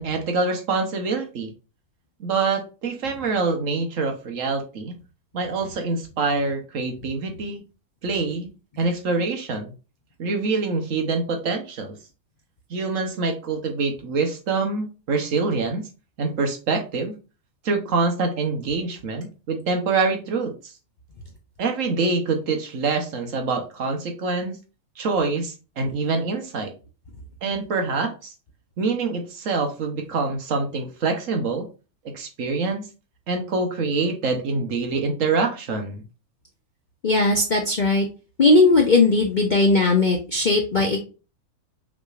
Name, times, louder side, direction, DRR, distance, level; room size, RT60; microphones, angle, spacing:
voice 1, 0.0-1.5 2.2-4.9 5.3-7.6 8.0-8.5 8.8-9.7 10.2-12.0 12.7-15.8 16.2-17.1 17.6-20.7 21.6-24.6 25.0-26.7 27.4-28.3 28.8-31.7 32.1-32.9 33.3-36.0, right 4 dB, 60° right, 4 dB, 1.3 m, -25 dB
voice 2, 37.0-38.1 38.4-41.0, left 3 dB, 45° left, 1 dB, 0.6 m, -18 dB
5.8 x 3.1 x 2.4 m, 0.32 s
omnidirectional pair, 1.6 m